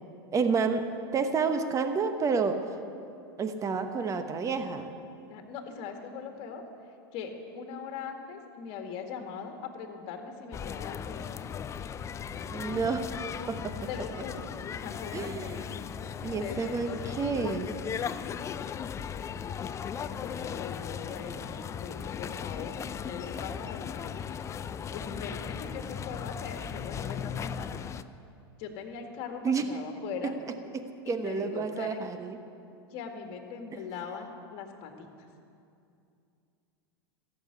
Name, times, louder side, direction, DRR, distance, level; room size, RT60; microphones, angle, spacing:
voice 1, 0.3-2.7 3.4-4.9 12.5-13.1 13.5-13.8 15.1-15.7 16.2-17.8 29.4-29.7 30.7-32.4, right 5 dB, 25° right, 8 dB, 1.1 m, -30 dB
voice 2, 5.3-6.6 7.1-11.4 13.9-14.4 14.8-15.6 16.2-17.2 18.0-18.3 20.0-21.5 21.8-24.1 24.9-27.8 28.6-30.4 31.0-32.1 32.9-35.3, left 6 dB, 50° left, 4 dB, 1.9 m, -41 dB
sound 1, 10.5-28.0, left 7 dB, 20° left, 0.4 m, -37 dB
14.0 x 7.3 x 9.7 m, 2.6 s
hypercardioid pair, 105°, 13 cm